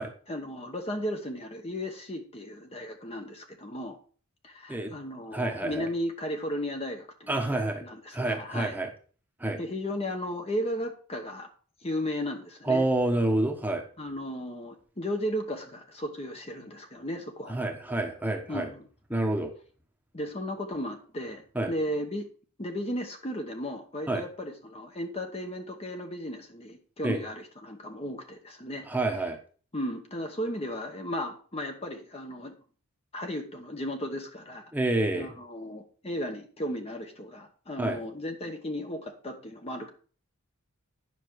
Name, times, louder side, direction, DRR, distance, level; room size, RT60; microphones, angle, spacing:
voice 1, 0.3-4.0 4.4-8.8 9.6-11.5 11.8-12.8 14.0-17.5 18.5-18.9 20.1-22.3 22.6-28.9 29.7-32.6 33.1-34.7 35.1-39.9, equal, 30° left, 4 dB, 1.0 m, -35 dB
voice 2, 5.3-5.8 7.3-7.8 8.1-8.9 9.4-9.6 12.7-13.8 17.5-18.7 19.1-19.5 21.5-21.7 24.1-24.2 27.0-27.2 28.9-29.4 34.7-35.3 37.8-38.0, right 2 dB, 10° right, 3 dB, 1.1 m, -28 dB
9.7 x 5.9 x 4.7 m, 0.41 s
head